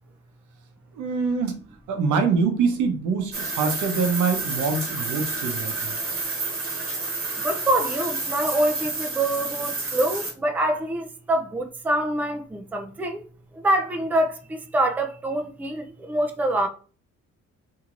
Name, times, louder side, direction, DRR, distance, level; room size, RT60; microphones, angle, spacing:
voice 1, 0.9-1.6 1.9-6.0, right 5 dB, 80° right, 0.8 m, -24 dB
sound 1, 3.3-10.3, right 3 dB, 45° right, 1.1 m, -30 dB
voice 2, 7.4-13.2 13.6-14.3 14.7-16.7, right 1 dB, 5° right, 0.4 m, -25 dB
3.0 x 2.7 x 2.4 m
cardioid pair, 90°, 30 cm